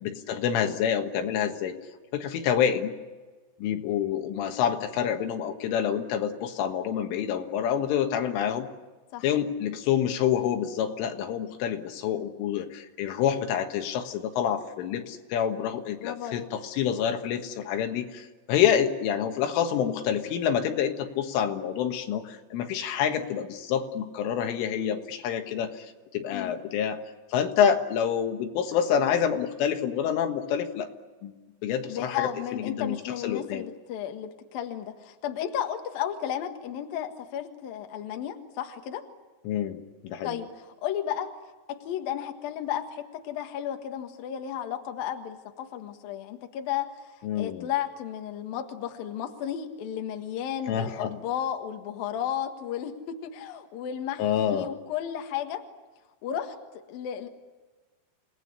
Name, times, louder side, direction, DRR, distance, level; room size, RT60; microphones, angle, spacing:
voice 1, 0.0-1.8 2.1-2.9 3.6-8.7 9.2-27.0 27.3-30.9 31.2-31.4 31.6-33.7 39.5-40.4 47.2-47.7 50.7-51.2 54.2-54.7, left 8 dB, 80° left, 5 dB, 4.1 m, -27 dB
voice 2, 16.0-16.5 26.3-26.5 31.9-39.0 40.2-41.3 41.7-46.9 47.4-55.6 56.2-57.3, left 10 dB, 60° left, 5 dB, 2.8 m, -33 dB
29.0 x 18.5 x 9.9 m, 1.3 s
omnidirectional pair, 5.7 m